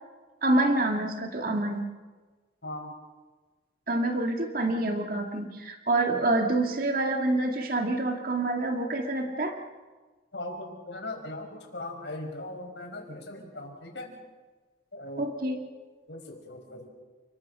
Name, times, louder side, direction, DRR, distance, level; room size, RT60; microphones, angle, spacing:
voice 1, 0.4-1.9 3.9-9.6 15.2-15.6, right 2 dB, 50° right, 3 dB, 2.2 m, -27 dB
voice 2, 10.3-14.2 14.9-15.3 16.1-16.9, left 2 dB, 75° left, 2 dB, 5.1 m, -39 dB
29.5 x 21.5 x 5.6 m, 1.4 s
head